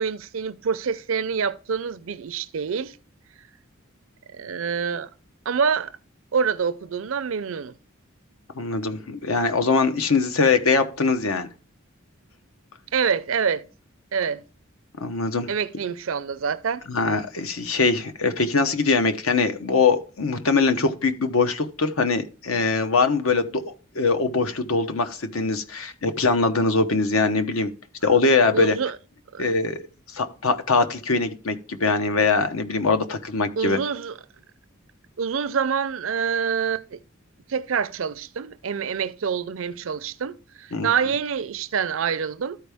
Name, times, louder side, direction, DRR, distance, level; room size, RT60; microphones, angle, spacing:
voice 1, 0.0-3.0 4.3-5.1 5.5-5.9 6.3-7.7 12.9-13.6 14.1-14.4 15.5-16.8 28.5-29.0 29.3-29.6 33.6-34.1 35.2-37.0 37.5-42.6, right 6 dB, 70° right, 0.5 m, -26 dB
voice 2, 8.6-11.5 15.0-15.5 16.9-27.7 28.0-28.7 29.4-29.8 30.1-33.8 40.7-40.9, left 4 dB, 85° left, 1.0 m, -22 dB
13.0 x 4.6 x 3.5 m
head